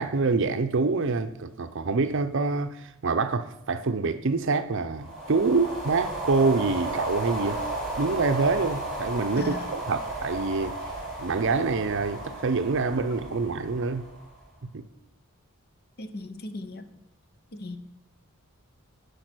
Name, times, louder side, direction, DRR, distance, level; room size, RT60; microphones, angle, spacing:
voice 1, 0.0-7.6 8.0-14.0 14.6-14.9, right 4 dB, 60° right, 0.6 m, -26 dB
sound 1, 5.0-14.4, right 1 dB, 5° left, 2.8 m, -34 dB
voice 2, 9.4-9.7 16.0-16.9 17.5-17.8, left 2 dB, 50° left, 0.7 m, -37 dB
10.5 x 5.3 x 6.1 m
head